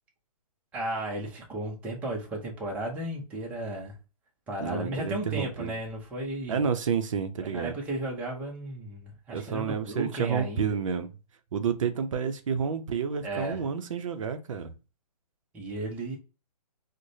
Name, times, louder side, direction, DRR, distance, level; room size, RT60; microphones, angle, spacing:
voice 1, 0.7-4.0 4.5-6.6 7.4-10.8 13.2-13.6 15.5-16.2, right 1 dB, 5° right, 0.6 m, -34 dB
voice 2, 4.6-5.7 6.5-7.7 9.3-11.1 11.5-14.7, right 6 dB, 55° right, 0.6 m, -30 dB
4.7 x 2.1 x 2.7 m
hypercardioid pair, 155°, 20 cm